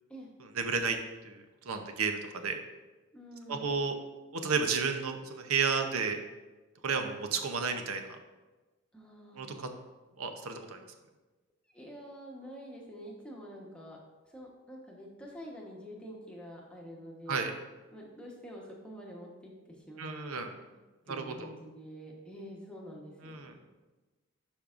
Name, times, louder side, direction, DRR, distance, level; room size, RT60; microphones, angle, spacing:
voice 1, 0.6-1.0 1.2-2.6 3.5-3.9 4.4-6.2 6.8-8.2 9.4-9.7 10.2-10.8 17.3-17.5 20.0-20.5 21.1-21.5 23.2-23.5, right 5 dB, 85° right, 5 dB, 0.7 m, -32 dB
voice 2, 3.1-3.8 8.9-9.5 11.7-14.0 14.2-17.5 17.9-20.8 21.1-23.6, equal, 5° left, -3 dB, 1.1 m, -47 dB
11.5 x 5.3 x 2.5 m, 1.2 s
head